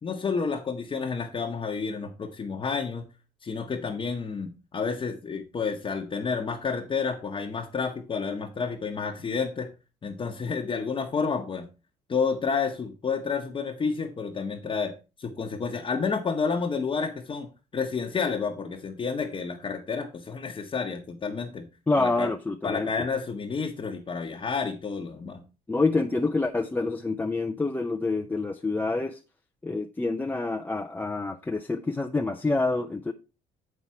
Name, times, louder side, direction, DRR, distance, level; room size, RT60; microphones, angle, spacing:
voice 1, 0.0-3.1 3.4-9.7 10.0-11.7 12.1-14.9 15.2-21.7 22.0-22.3 22.6-25.4, left 5 dB, 30° left, 1.0 m, -30 dB
voice 2, 21.9-22.9 25.7-29.2 29.6-33.1, left 3 dB, 10° left, 0.5 m, -27 dB
7.3 x 5.7 x 4.6 m
cardioid pair, 110°, 17 cm